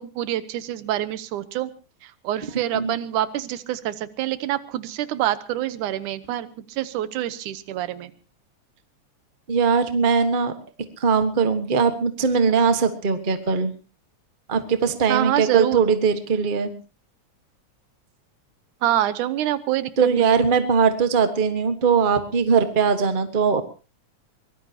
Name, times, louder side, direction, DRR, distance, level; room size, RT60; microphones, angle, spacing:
voice 1, 0.0-1.7 2.0-8.1 15.1-15.9 18.8-20.4, right 13 dB, 90° right, 14 dB, 2.5 m, -26 dB
voice 2, 9.5-10.5 11.0-13.7 14.5-16.7 20.0-23.6, right 5 dB, 45° right, 8 dB, 0.6 m, -20 dB
24.0 x 18.5 x 2.9 m, 0.34 s
omnidirectional pair, 3.5 m